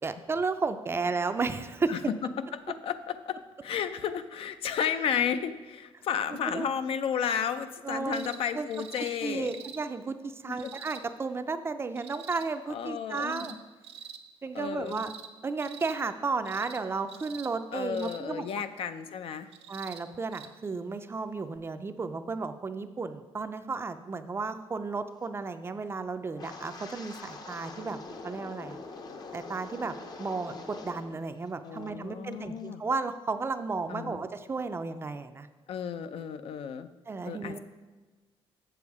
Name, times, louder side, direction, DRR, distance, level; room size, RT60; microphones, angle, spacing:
voice 1, 0.0-2.0 6.5-6.7 7.8-8.7 9.2-13.6 14.4-15.1 15.4-18.5 19.7-28.8 29.3-35.5 37.1-37.6, right 4 dB, 25° right, 10 dB, 0.4 m, -33 dB
voice 2, 2.5-9.5 10.5-10.7 12.7-13.6 14.5-15.0 17.7-19.5 31.6-32.8 33.9-34.2 35.7-36.9 37.2-37.6, left 8 dB, 65° left, 11 dB, 0.5 m, -33 dB
sound 1, 8.1-8.4 8.7-9.1 9.4-9.8 10.6-11.0 12.0-12.4 13.1-13.5 13.8-14.2 14.9-15.3 15.6-16.0 16.4-16.8 17.1-17.5 17.9-18.2 19.5-20.0 20.3-20.5 21.6-21.7, right 8 dB, 80° right, 0.7 m, -46 dB
Wind, 26.3-31.2 31.5-31.9 32.3-32.6, left 3 dB, 40° left, 0.8 m, -44 dB
7.2 x 7.0 x 4.8 m, 1.3 s
cardioid pair, 145°, 10 cm